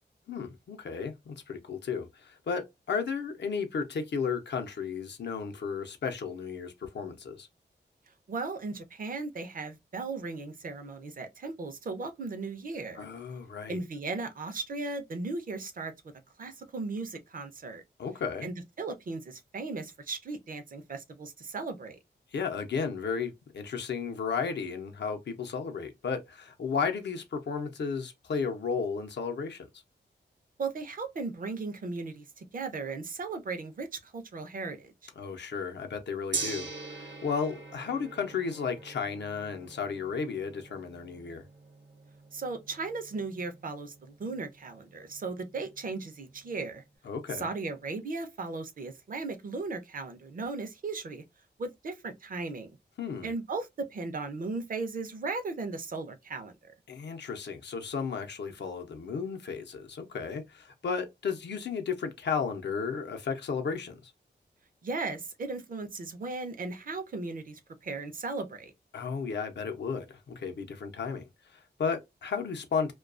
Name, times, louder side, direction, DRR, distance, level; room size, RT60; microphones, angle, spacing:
voice 1, 0.3-7.5 13.0-13.8 18.0-18.5 22.3-29.7 35.2-41.4 47.0-47.5 53.0-53.3 56.9-64.1 68.9-72.9, left 5 dB, 75° left, 0.6 m, -34 dB
voice 2, 8.3-13.0 13.7-15.9 16.4-17.8 18.4-22.0 30.6-35.1 42.3-46.8 47.3-51.2 51.6-52.8 53.2-56.7 64.8-68.7, right 3 dB, 50° right, 0.5 m, -37 dB
Gong, 36.3-46.5, right 4 dB, 90° right, 0.8 m, -43 dB
2.3 x 2.2 x 2.4 m
wide cardioid pair, 100°, 18 cm